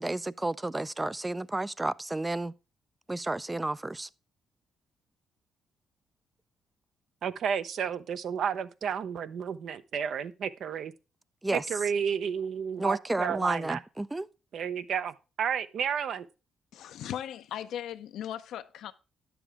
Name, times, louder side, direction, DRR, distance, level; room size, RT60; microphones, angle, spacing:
voice 1, 0.0-2.5 3.1-4.1 11.4-11.6 12.8-14.3, right 2 dB, 15° right, 0.3 m, -31 dB
voice 2, 7.2-10.9 11.5-13.8 14.5-16.3, right 7 dB, 65° right, 0.6 m, -31 dB
voice 3, 16.7-18.9, left 10 dB, 80° left, 0.6 m, -38 dB
10.0 x 7.0 x 3.4 m
cardioid pair, 90°, 0 cm